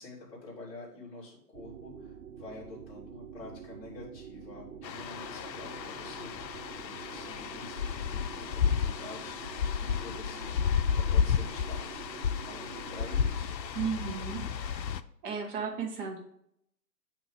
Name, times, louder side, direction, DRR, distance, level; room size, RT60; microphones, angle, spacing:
voice 1, 0.0-10.6 10.9-13.6, left 2 dB, 15° left, -9 dB, 2.5 m, -48 dB
sound 1, 1.5-14.2, right 7 dB, 85° right, 0.8 m, -47 dB
sound 2, 4.8-15.0, left 7 dB, 90° left, 0.6 m, -32 dB
voice 2, 13.7-14.7 15.2-16.2, right 6 dB, 30° right, 1 dB, 1.3 m, -34 dB
8.8 x 3.0 x 4.9 m, 0.75 s
hypercardioid pair, 140°, 50 cm